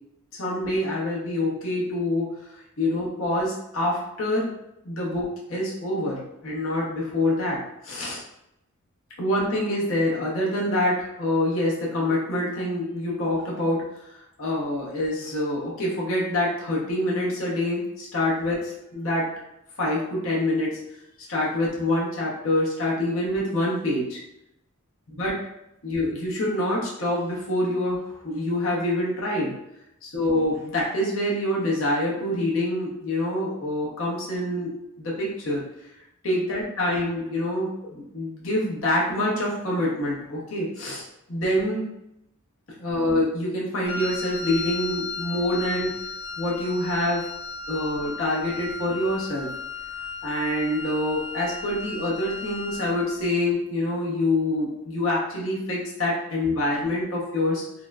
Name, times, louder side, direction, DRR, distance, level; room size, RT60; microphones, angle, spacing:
voice 1, 0.3-2.4 2.8-4.5 4.8-8.2 9.2-19.3 19.8-20.8 21.3-24.2 25.1-25.4 25.8-29.6 30.0-35.6 36.2-41.9 42.8-45.9 46.4-47.2 47.7-49.5 50.2-57.6, left 1 dB, 65° left, -5 dB, 0.8 m, -26 dB
Wind instrument woodwind instrument, 43.9-53.1, left 4 dB, 25° left, 0.5 m, -35 dB
3.7 x 2.0 x 2.3 m, 0.84 s
head